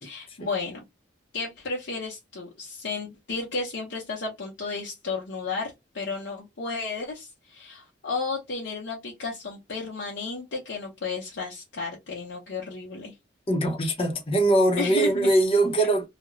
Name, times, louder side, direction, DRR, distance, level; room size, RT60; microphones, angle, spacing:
voice 1, 0.0-0.8 1.3-13.1 14.8-15.3, left 4 dB, 65° left, 0.7 m, -33 dB
voice 2, 13.5-16.1, right 1 dB, 30° left, 0.7 m, -22 dB
2.4 x 2.1 x 2.9 m
head